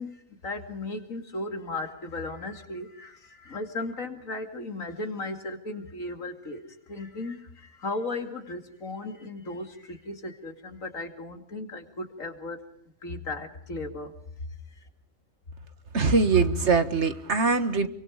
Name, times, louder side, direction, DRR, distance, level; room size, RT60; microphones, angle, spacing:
voice 1, 0.0-12.6 13.0-14.1, left 2 dB, 75° left, 2.9 m, -36 dB
voice 2, 15.9-17.9, right 4 dB, 55° right, 1.9 m, -22 dB
28.5 x 24.0 x 5.1 m
omnidirectional pair, 1.4 m